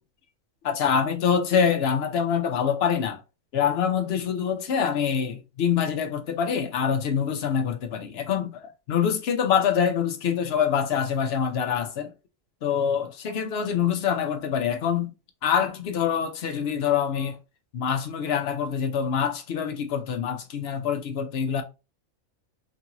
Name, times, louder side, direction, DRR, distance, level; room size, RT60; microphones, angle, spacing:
voice 1, 0.6-3.2 3.5-12.1 12.6-15.1 15.4-17.4 17.7-21.6, left 7 dB, 60° left, 0.8 m, -25 dB
3.0 x 2.6 x 2.8 m
omnidirectional pair, 1.4 m